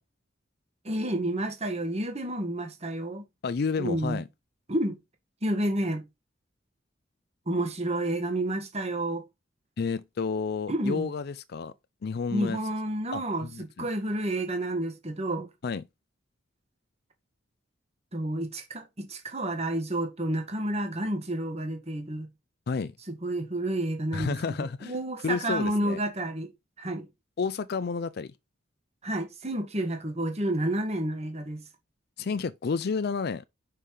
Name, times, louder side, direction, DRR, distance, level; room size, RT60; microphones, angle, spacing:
voice 1, 0.8-3.2 3.8-4.2 4.7-5.0 5.4-6.0 7.5-9.2 10.7-11.1 12.3-15.5 18.1-22.3 23.2-26.5 26.8-27.1 29.0-31.6, right 1 dB, 35° right, 1.7 m, -30 dB
voice 2, 3.4-4.3 9.8-11.7 12.0-12.6 13.1-13.9 15.6-15.8 22.7-22.9 24.1-24.9 25.2-26.0 27.4-28.3 32.2-33.4, left 5 dB, 55° left, 0.4 m, -30 dB
5.5 x 5.5 x 4.8 m
head